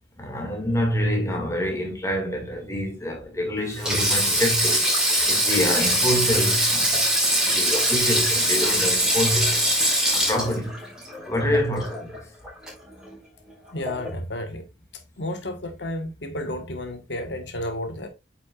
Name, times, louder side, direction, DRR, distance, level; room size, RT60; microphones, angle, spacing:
voice 1, 0.2-4.9 5.2-7.0 7.4-9.7 10.1-10.8 11.3-12.3, equal, 15° left, 2.1 m, -26 dB
Sink (filling or washing), 3.7-12.2 12.4-12.7 13.9-14.1, right 1 dB, 5° right, 4.0 m, -22 dB
voice 2, 13.7-14.6 15.2-18.1, left 1 dB, 80° left, 1.4 m, -32 dB
8.7 x 5.9 x 2.4 m
head